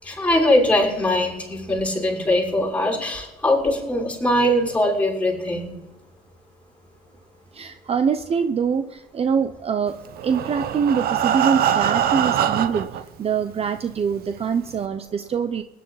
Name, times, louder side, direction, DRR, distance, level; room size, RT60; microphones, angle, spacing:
voice 1, 0.0-5.7, left 1 dB, 10° left, -3 dB, 6.1 m, -21 dB
voice 2, 7.5-12.9 13.2-15.6, right 6 dB, 35° right, 9 dB, 0.7 m, -24 dB
Breathing, 10.1-13.0 13.8-13.9 14.2-14.3 14.8-14.9, right 9 dB, 65° right, 1.0 m, -22 dB
20.5 x 10.5 x 4.1 m, 1.1 s
cardioid pair, 110°, 17 cm